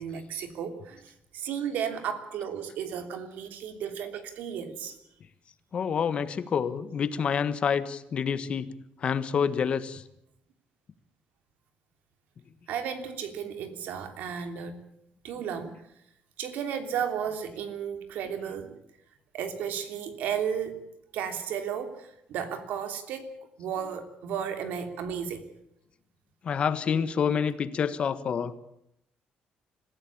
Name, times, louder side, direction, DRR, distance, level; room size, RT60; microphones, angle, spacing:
voice 1, 0.0-5.0 12.7-14.8 15.2-15.8 16.4-18.8 19.3-20.8 21.1-25.5, right 8 dB, 85° right, 8 dB, 3.1 m, -34 dB
voice 2, 5.7-8.7 9.0-10.0 17.5-17.6 23.8-24.0 26.4-28.5, left 7 dB, 40° left, 13 dB, 1.5 m, -28 dB
26.0 x 15.0 x 8.7 m, 0.78 s
cardioid pair, 150°, 3 cm